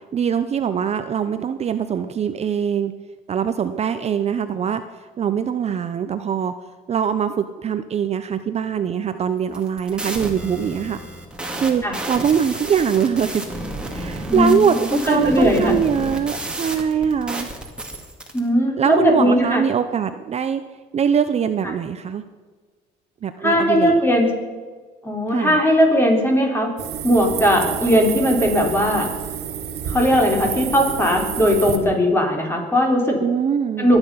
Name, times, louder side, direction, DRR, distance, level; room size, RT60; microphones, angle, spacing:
voice 1, 0.1-2.9 3.3-4.8 5.2-6.5 6.9-11.0 11.6-13.4 13.9-17.5 18.8-20.6 20.9-22.2 23.2-24.0 25.3-25.6 33.2-33.9, right 7 dB, 40° right, 10 dB, 0.7 m, -22 dB
sound 1, 9.4-18.4, right 1 dB, 5° right, 2.4 m, -31 dB
voice 2, 14.3-15.7 18.3-19.6 23.4-24.3 25.0-26.7 27.0-29.1 29.9-33.2 33.8-34.0, equal, 15° left, 1 dB, 3.9 m, -18 dB
sound 2, 26.8-31.8, right 8 dB, 75° right, 1.9 m, -29 dB
23.0 x 8.9 x 5.6 m, 1.5 s
cardioid pair, 110°, 17 cm